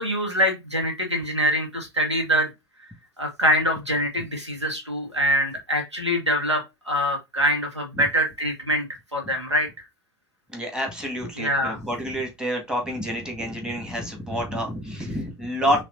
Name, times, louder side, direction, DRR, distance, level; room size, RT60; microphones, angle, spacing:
voice 1, 0.0-2.5 3.2-8.9 9.1-9.7 11.4-11.8, equal, 90° right, 1.8 m, -24 dB
voice 2, 10.5-15.8, equal, 5° right, 1.9 m, -28 dB
5.6 x 3.3 x 2.7 m
figure-of-eight pair, 85°, 14 cm